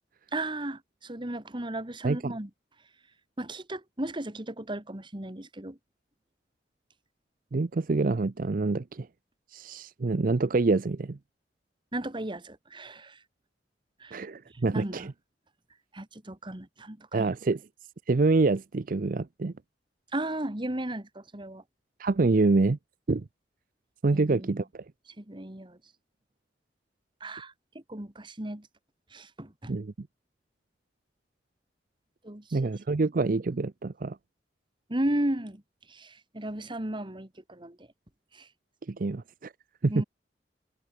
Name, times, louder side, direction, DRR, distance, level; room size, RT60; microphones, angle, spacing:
voice 1, 0.3-2.5 3.4-5.8 11.9-13.2 14.0-14.2 14.7-15.1 15.9-17.3 20.1-21.6 24.1-24.6 25.2-25.8 27.2-27.5 27.9-28.7 29.1-29.7 32.2-32.7 34.9-35.6 35.9-37.9 38.3-38.5 39.9-40.0, right 1 dB, 25° right, 1.8 m, -35 dB
voice 2, 2.0-2.3 7.5-9.1 9.5-11.2 14.1-15.1 17.1-17.6 18.1-19.5 22.0-22.8 23.1-23.2 24.0-24.8 29.7-30.1 32.5-34.2 38.9-39.5 39.8-40.0, right 3 dB, 50° right, 0.5 m, -26 dB
head